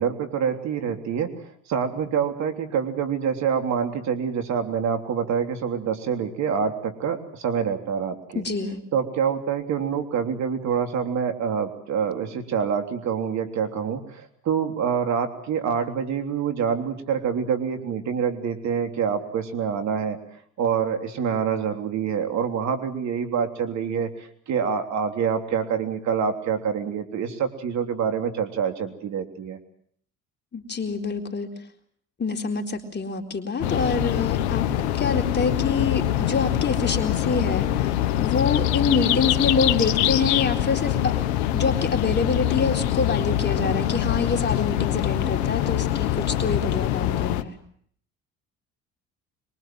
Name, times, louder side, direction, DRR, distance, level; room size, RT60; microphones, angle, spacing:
voice 1, 0.0-8.4 8.9-20.2 20.6-29.6 43.6-43.8, right 7 dB, 60° right, 6 dB, 3.4 m, -26 dB
voice 2, 8.3-8.8 30.5-31.5 32.2-41.1 41.5-47.5, left 4 dB, 35° left, 4 dB, 4.1 m, -26 dB
sound 1, 33.6-47.4, left 13 dB, 85° left, 1.5 m, -24 dB
23.5 x 23.0 x 7.7 m, 0.63 s
hypercardioid pair, 70°, 32 cm